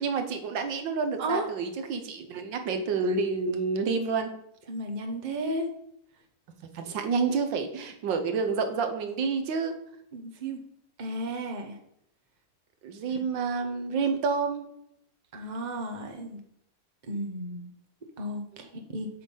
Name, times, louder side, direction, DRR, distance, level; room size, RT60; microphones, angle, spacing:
voice 1, 0.0-4.3 6.7-9.7 12.8-14.6 18.5-18.6, right 5 dB, 80° right, 7 dB, 1.7 m, -29 dB
voice 2, 4.7-5.7 10.1-10.6 11.0-11.8 13.1-13.3 15.3-16.4 17.1-17.7 18.2-19.1, right 1 dB, 30° right, 4 dB, 1.0 m, -33 dB
7.6 x 6.0 x 5.4 m, 0.76 s
omnidirectional pair, 2.0 m